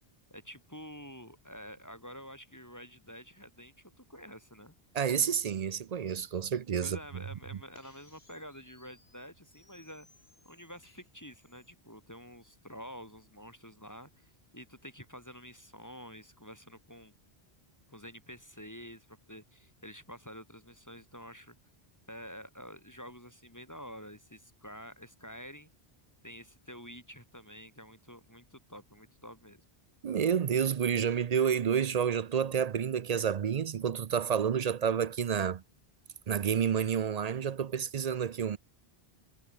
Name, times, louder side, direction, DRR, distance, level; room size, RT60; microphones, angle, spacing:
voice 1, 0.3-4.7 6.8-10.1 10.4-17.1 17.9-21.6 22.1-25.7 26.2-29.6, equal, 15° left, 4.3 m, -48 dB
voice 2, 4.9-7.0 30.0-35.6 36.3-38.6, right 8 dB, 50° right, 0.5 m, -29 dB
sound 1, 6.3-11.7, left 2 dB, 75° left, 3.9 m, -65 dB
omnidirectional pair, 1.1 m